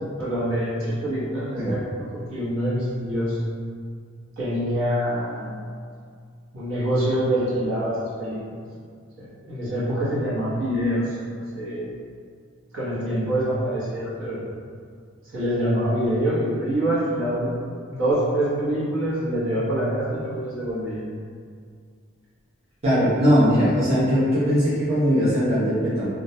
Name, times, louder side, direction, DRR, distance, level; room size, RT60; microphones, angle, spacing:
voice 1, 0.2-1.8 2.1-3.4 4.4-5.5 6.5-8.5 9.2-12.0 12.7-14.4 15.3-21.0, right 1 dB, 75° right, -9 dB, 0.9 m, -25 dB
voice 2, 22.8-26.1, equal, 30° right, -11 dB, 0.6 m, -20 dB
2.3 x 2.1 x 2.7 m, 2.1 s
head